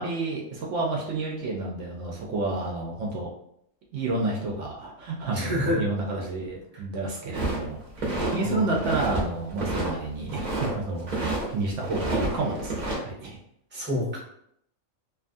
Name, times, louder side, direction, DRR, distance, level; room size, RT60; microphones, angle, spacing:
voice 1, 0.0-3.3 3.9-13.4, right 2 dB, 70° right, -2 dB, 0.9 m, -30 dB
voice 2, 5.3-5.8 8.2-8.6 13.7-14.2, left 1 dB, 10° right, -5 dB, 0.8 m, -28 dB
sound 1, 7.3-8.4 8.7-9.2 9.5-10.7 11.0-11.4 11.8-13.0, right 2 dB, 40° right, 0.8 m, -29 dB
2.6 x 2.3 x 2.5 m, 0.72 s
omnidirectional pair, 1.3 m